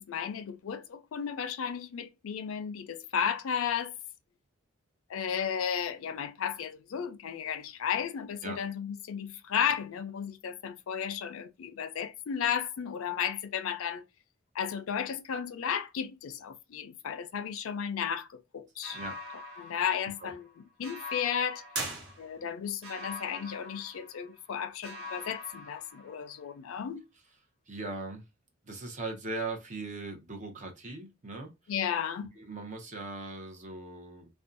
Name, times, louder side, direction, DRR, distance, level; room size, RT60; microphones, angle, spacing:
voice 1, 0.0-3.9 5.1-14.1 14.5-19.0 19.6-21.6 22.2-27.0 31.7-32.3, left 8 dB, 90° left, 0.4 m, -34 dB
sound 1, 18.8-20.5 20.8-22.5 22.8-24.5 24.8-26.5, left 3 dB, 75° right, 0.9 m, -45 dB
sound 2, 21.7-22.7, right 2 dB, 55° right, 1.1 m, -37 dB
voice 2, 27.7-28.3 28.6-31.5 32.4-34.4, right 2 dB, 35° right, 0.7 m, -39 dB
2.6 x 2.2 x 2.4 m
head